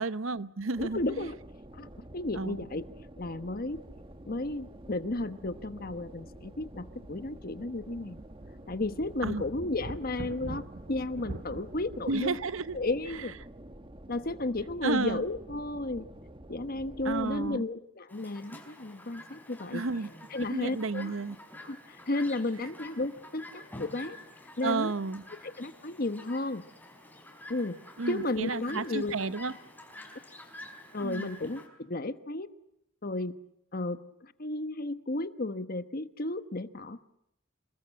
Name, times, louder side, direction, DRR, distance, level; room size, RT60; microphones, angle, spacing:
voice 1, 0.0-1.3 2.3-2.6 9.2-9.4 12.1-12.8 13.1-13.2 14.8-15.2 17.0-17.6 19.7-20.1 20.5-21.4 24.6-25.2 28.0-29.5 31.0-31.3, right 3 dB, 75° right, 15 dB, 0.9 m, -32 dB
sound 1, 0.7-17.6, right 1 dB, 25° right, 1.2 m, -49 dB
voice 2, 0.8-1.3 1.7-2.8 3.2-3.8 4.3-8.2 8.7-12.4 12.7-13.3 14.1-16.1 16.5-19.8 20.3-21.1 21.6-24.2 24.6-24.9 25.6-26.6 27.5-27.8 28.1-29.2 30.9-32.5 33.0-33.4 33.7-37.0, left 2 dB, 45° left, 12 dB, 1.1 m, -33 dB
sound 2, 3.7-3.9 4.2-4.3 5.3-6.7 7.1-7.2 7.7-12.4, right 2 dB, 45° right, 0.9 m, -45 dB
Chirp tweet, 18.1-31.7, left 1 dB, 10° left, 4.6 m, -48 dB
27.5 x 20.5 x 7.7 m, 0.79 s
head